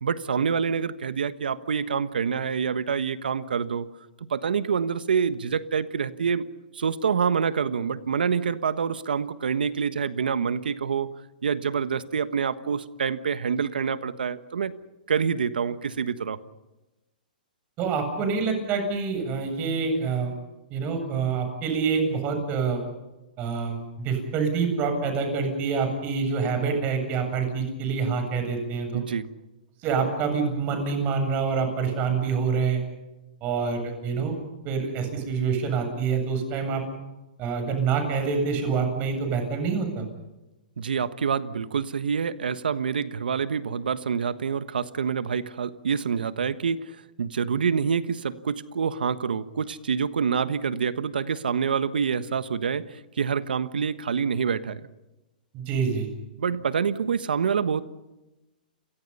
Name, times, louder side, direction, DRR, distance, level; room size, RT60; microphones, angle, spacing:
voice 1, 0.0-3.9 4.2-6.5 6.7-11.1 11.4-14.7 15.1-16.4 28.9-29.3 40.8-46.9 47.2-54.9 56.4-57.8, right 6 dB, 85° right, 13 dB, 1.4 m, -26 dB
voice 2, 17.8-20.3 20.7-22.8 23.4-29.0 29.8-32.8 33.4-34.3 34.6-36.8 37.4-40.1 55.5-56.1, right 5 dB, 35° right, 6 dB, 7.8 m, -26 dB
30.0 x 23.5 x 5.6 m, 1.0 s
hypercardioid pair, 135°, 5 cm